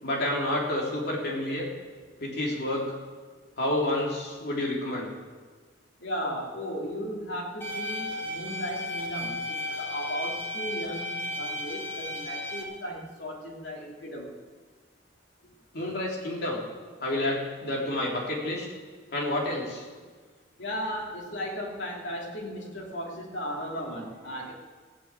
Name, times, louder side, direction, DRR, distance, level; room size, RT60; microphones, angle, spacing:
voice 1, 0.0-1.7 2.2-3.0 3.6-5.1 15.7-16.6 17.0-18.7 19.1-19.8, left 1 dB, 60° left, -2 dB, 3.5 m, -29 dB
voice 2, 6.0-14.3 15.8-15.9 20.6-24.5, equal, 80° left, -1 dB, 3.1 m, -36 dB
sound 1, 7.6-12.6, left 1 dB, 10° left, 2.7 m, -34 dB
15.5 x 8.9 x 8.4 m, 1.5 s
head